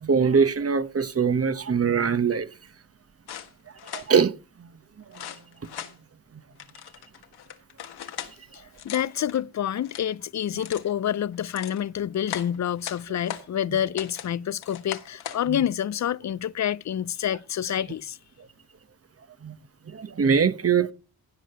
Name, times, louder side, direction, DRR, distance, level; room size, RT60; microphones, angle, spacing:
voice 1, 0.0-2.5 3.9-4.3 15.5-15.6 19.4-19.5 19.9-20.9, right 6 dB, 40° right, 1.2 m, -22 dB
sound 1, 3.3-4.1 5.1-5.9 6.6-8.3 8.7-9.4 9.8-10.1 10.6-10.9 11.3-11.8 12.3-13.5 14.0-14.3 14.6-15.4, left 10 dB, 80° left, 1.7 m, -38 dB
voice 2, 8.8-18.2, left 10 dB, 45° left, 0.6 m, -28 dB
16.5 x 6.4 x 5.5 m
supercardioid pair, 60°, 38 cm